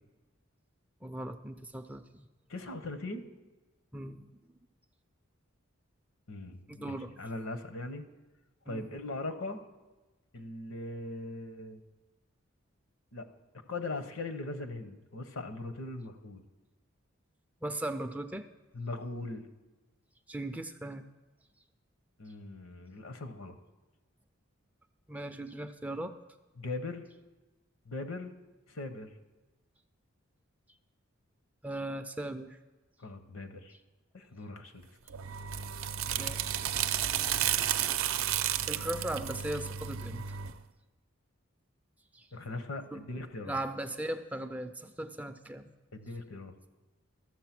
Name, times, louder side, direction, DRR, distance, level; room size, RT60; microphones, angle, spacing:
voice 1, 1.0-2.3 3.9-4.3 6.7-7.1 8.7-8.9 17.6-18.4 20.3-21.0 25.1-26.1 31.6-32.6 36.1-36.6 38.4-40.4 42.1-42.3 42.9-43.0 43.4-45.7, right 1 dB, 5° right, 8 dB, 0.3 m, -38 dB
voice 2, 2.5-3.3 6.3-8.0 8.7-9.6 10.3-11.8 13.1-13.3 13.7-16.4 18.7-19.5 22.2-23.6 26.6-27.1 27.8-28.3 28.7-29.1 33.0-33.7 34.1-35.0 42.3-43.6 45.9-46.5, left 2 dB, 80° left, 9 dB, 0.9 m, -40 dB
sound 1, 35.1-40.6, right 10 dB, 85° right, 0.5 m, -32 dB
13.0 x 7.6 x 5.9 m, 1.1 s
head